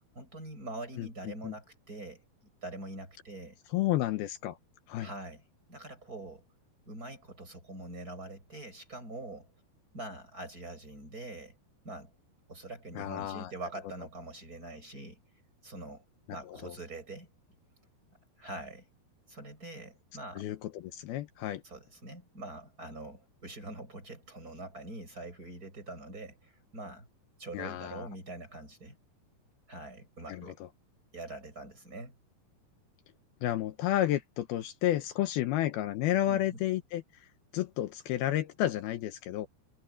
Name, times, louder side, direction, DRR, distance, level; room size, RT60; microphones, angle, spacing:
voice 1, 0.1-2.2 2.6-3.6 5.0-5.4 5.7-6.4 6.9-9.5 9.9-11.6 11.8-12.1 12.5-15.2 15.6-16.1 16.3-17.3 18.4-18.9 19.3-20.4 21.6-27.1 27.4-29.0 29.7-30.6 31.1-32.2 36.3-36.6, right 2 dB, 20° right, 7.6 m, -44 dB
voice 2, 3.7-4.6 4.9-5.1 13.0-13.5 16.6-16.7 20.4-21.6 27.5-28.1 30.3-30.7 33.4-37.2 37.5-39.5, left 13 dB, 75° left, 2.8 m, -31 dB
omnidirectional pair, 4.6 m